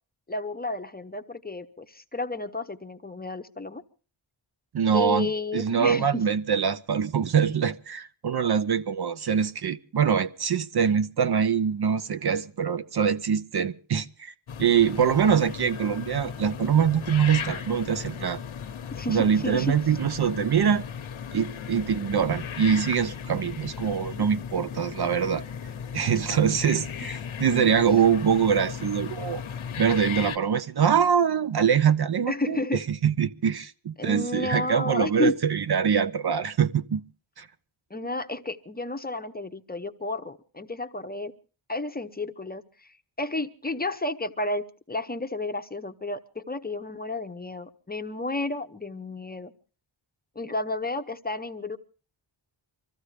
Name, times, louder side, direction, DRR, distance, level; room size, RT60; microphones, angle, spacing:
voice 1, 0.3-3.8 4.9-6.2 18.9-19.7 27.5-27.7 32.3-32.8 34.0-35.4 37.9-41.3 41.7-49.5 50.4-51.8, left 2 dB, 20° left, 0.7 m, -32 dB
voice 2, 4.7-5.3 5.5-14.3 14.6-18.4 19.1-20.8 21.3-25.4 25.9-29.4 29.8-32.6 32.9-37.0 37.4-37.5, right 7 dB, 55° right, 0.7 m, -24 dB
sound 1, 14.5-30.4, left 7 dB, 85° left, 1.0 m, -36 dB
25.0 x 14.5 x 3.3 m
wide cardioid pair, 115°, 48 cm